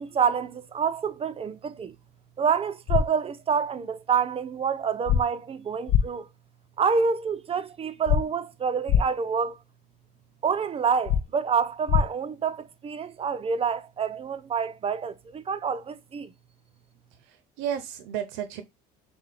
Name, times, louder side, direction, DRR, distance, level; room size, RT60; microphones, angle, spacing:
voice 1, 0.0-1.9 2.4-6.3 6.8-9.6 10.4-16.3, right 6 dB, 30° right, 0.6 m, -27 dB
sound 1, 2.9-3.0 5.1-5.2 5.9-6.0 8.1-8.2 8.9-9.0 11.1-11.2 11.9-12.0, left 8 dB, 55° left, 0.6 m, -20 dB
voice 2, 17.2-18.6, right 9 dB, 75° right, 0.6 m, -33 dB
5.6 x 2.3 x 3.3 m
supercardioid pair, 90°, 20 cm